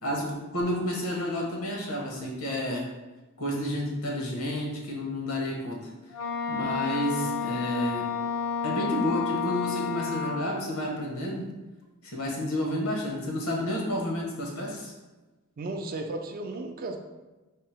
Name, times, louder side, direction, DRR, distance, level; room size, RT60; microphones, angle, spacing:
voice 1, 0.0-2.9 3.4-5.8 6.5-8.1 8.6-11.5 12.0-14.9, left 1 dB, 85° left, -1 dB, 0.9 m, -30 dB
Wind instrument woodwind instrument, 6.1-10.6, left 6 dB, 65° left, 0.5 m, -31 dB
voice 2, 15.6-17.0, right 2 dB, 45° right, 4 dB, 0.4 m, -34 dB
3.6 x 2.0 x 4.2 m, 1.2 s
head